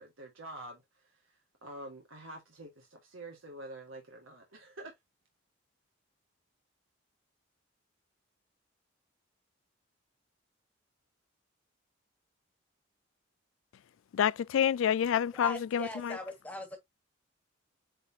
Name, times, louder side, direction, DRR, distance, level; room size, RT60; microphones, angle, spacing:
voice 1, 0.0-4.9, right 1 dB, 85° right, 1.8 m, -47 dB
voice 2, 14.1-16.2, left 9 dB, 75° left, 0.3 m, -28 dB
voice 3, 15.4-16.8, left 1 dB, 5° left, 1.5 m, -40 dB
8.8 x 4.0 x 2.8 m
head